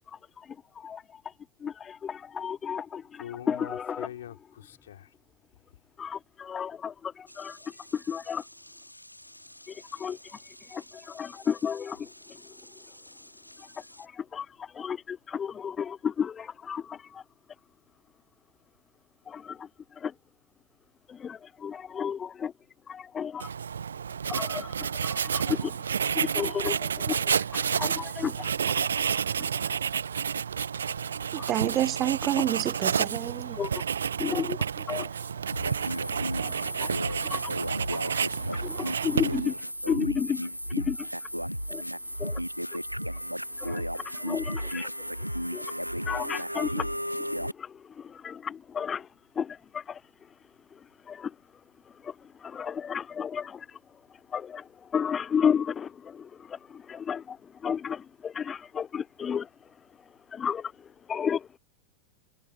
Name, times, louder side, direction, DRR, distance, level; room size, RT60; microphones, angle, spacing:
voice 1, 0.1-1.3 1.6-4.1 6.0-8.5 9.7-10.4 10.7-12.6 13.6-17.2 19.3-20.1 21.1-22.5 22.9-23.5 24.3-25.8 26.1-28.9 29.4-29.7 31.4-31.5 33.5-33.8 34.2-35.1 36.4-36.5 36.8-37.4 37.9-38.0 38.5-39.6 39.9-40.5 40.8-41.1 41.7-41.8 42.2-42.4 43.6-45.7 46.0-49.1 49.3-50.3 50.7-51.4 51.9-54.0 54.3-59.7 60.3-61.6, left 7 dB, 20° left, 0.5 m, -34 dB
voice 2, 3.1-5.1, left 11 dB, 60° left, 3.2 m, -43 dB
sound 1, 7.3-14.1, left 1 dB, 90° left, 4.8 m, -51 dB
Writing, 23.4-39.6, right 7 dB, 70° right, 1.3 m, -30 dB
voice 3, 31.3-33.6, right 13 dB, 30° right, 0.7 m, -28 dB
sound 2, 35.5-47.5, equal, 90° right, 0.6 m, -33 dB
figure-of-eight pair, 90°, 0 cm